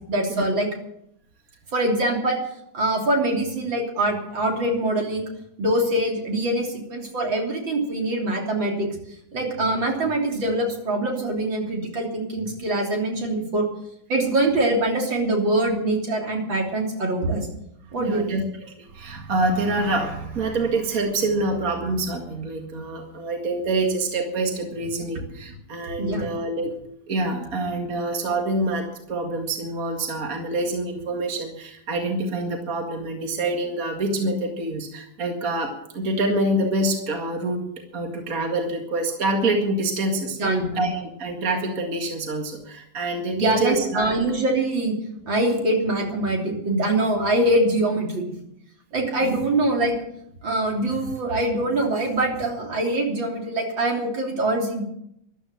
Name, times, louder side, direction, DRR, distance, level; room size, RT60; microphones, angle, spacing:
voice 1, 0.1-0.7 1.7-2.4 2.7-5.3 5.6-8.9 9.3-13.7 14.1-17.5 17.9-18.4 26.0-26.3 40.4-40.9 43.4-44.9 45.3-48.2 48.9-49.9 50.4-54.8, right 1 dB, 80° right, 0 dB, 4.0 m, -23 dB
voice 2, 18.0-18.4 18.8-26.7 27.1-37.6 37.9-40.4 40.8-44.2 49.2-49.3, right 2 dB, 45° right, 2 dB, 2.4 m, -26 dB
14.5 x 12.0 x 6.9 m, 0.76 s
omnidirectional pair, 2.1 m